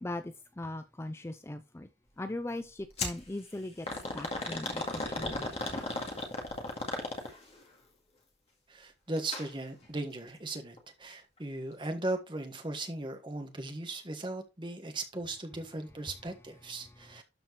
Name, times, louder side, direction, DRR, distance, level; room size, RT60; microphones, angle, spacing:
voice 1, 0.0-1.9 2.2-3.9 4.1-5.5, left 1 dB, 15° left, 0.4 m, -39 dB
sound 1, 3.0-3.2 3.9-7.5 9.2-9.5 9.8-9.9 10.8-10.9, left 2 dB, 35° left, 1.9 m, -35 dB
voice 2, 8.7-17.2, right 2 dB, 25° right, 1.4 m, -38 dB
12.5 x 4.4 x 3.1 m
head